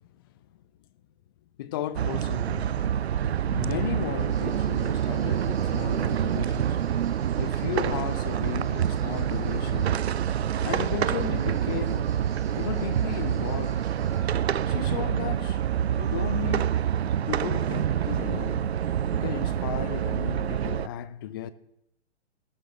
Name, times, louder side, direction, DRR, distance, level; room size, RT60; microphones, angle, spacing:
voice 1, 1.6-2.7 3.5-6.8 7.4-10.0 10.6-12.1 12.6-13.8 14.7-15.6 16.0-16.7 17.3-18.7 19.0-21.5, left 12 dB, 20° left, 0.4 m, -35 dB
sound 1, 2.0-20.9, right 9 dB, 65° right, 0.6 m, -27 dB
sound 2, 4.2-14.2, right 4 dB, 20° right, 4.6 m, -55 dB
18.5 x 14.0 x 3.5 m
figure-of-eight pair, 115°, 35 cm